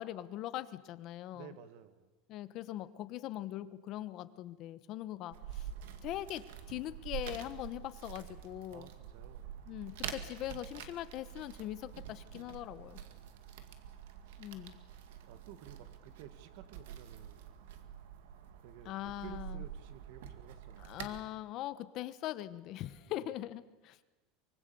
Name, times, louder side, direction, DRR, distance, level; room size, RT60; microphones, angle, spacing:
voice 1, 0.0-1.5 2.3-5.7 6.0-8.9 9.7-13.0 14.4-14.8 18.8-19.6 20.8-24.0, left 14 dB, 40° left, 13 dB, 1.1 m, -41 dB
voice 2, 1.3-2.1 8.7-9.6 13.0-13.9 14.3-14.4 15.3-17.5 18.6-21.0 23.0-23.4, right 11 dB, 60° right, 11 dB, 1.9 m, -54 dB
sound 1, 5.3-21.2, right 9 dB, 85° right, 2.2 m, -47 dB
24.5 x 24.0 x 7.0 m, 1.1 s
supercardioid pair, 165°, 0 cm